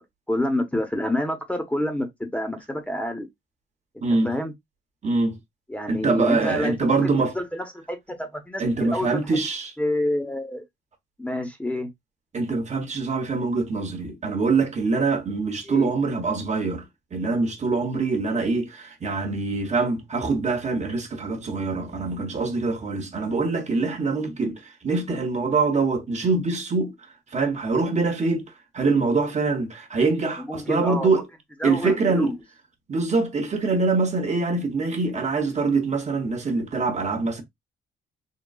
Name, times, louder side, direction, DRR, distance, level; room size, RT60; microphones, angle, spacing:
voice 1, 0.3-3.3 3.9-4.5 5.7-7.1 7.3-9.4 9.8-10.6 11.2-11.9 15.6-15.9 30.5-31.1 31.6-32.3, left 1 dB, 5° left, 0.9 m, -28 dB
voice 2, 4.0-4.3 5.0-5.4 5.9-7.3 8.6-9.7 12.3-16.8 17.1-26.9 27.3-31.3 31.6-32.4 32.9-37.4, right 3 dB, 35° right, 1.1 m, -24 dB
3.8 x 2.3 x 2.3 m
cardioid pair, 90°, 20 cm